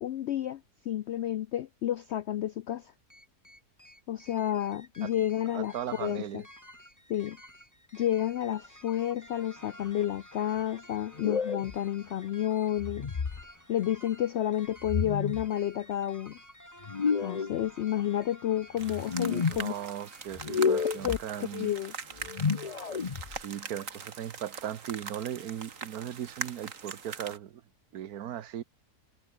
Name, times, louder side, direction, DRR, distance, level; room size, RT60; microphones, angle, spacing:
voice 1, 0.0-2.9 4.1-6.4 7.1-7.4 7.9-13.1 13.7-16.4 17.2-19.7 20.6-20.7 21.0-21.9, left 11 dB, 75° left, 0.6 m, -31 dB
sound 1, 3.1-22.5, equal, 10° left, 6.8 m, -53 dB
voice 2, 5.5-6.4 19.5-21.7 23.2-27.6 27.9-28.6, right 10 dB, 70° right, 1.4 m, -38 dB
sound 2, 11.1-11.7 12.8-13.4 14.8-15.5 16.8-17.5 18.8-19.6 20.3-21.2 22.2-23.4, left 5 dB, 35° left, 0.7 m, -30 dB
sound 3, 18.8-27.4, right 6 dB, 55° right, 2.0 m, -42 dB
omnidirectional pair, 1.7 m